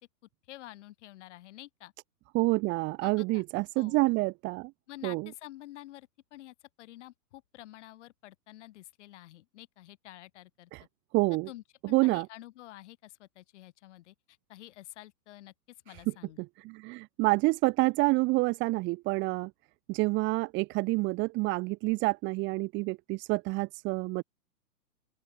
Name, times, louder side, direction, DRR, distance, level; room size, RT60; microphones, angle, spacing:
voice 1, 0.5-1.9 3.0-3.4 3.8-4.0 4.9-10.7 11.5-15.5 15.9-16.4, left 15 dB, 45° left, 5.9 m, -49 dB
voice 2, 2.3-4.7 5.0-5.3 10.7-10.8 11.1-11.5 11.8-12.3 16.4-19.5 19.9-24.2, right 24 dB, 20° right, 1.8 m, -28 dB
open air
hypercardioid pair, 155°, 49 cm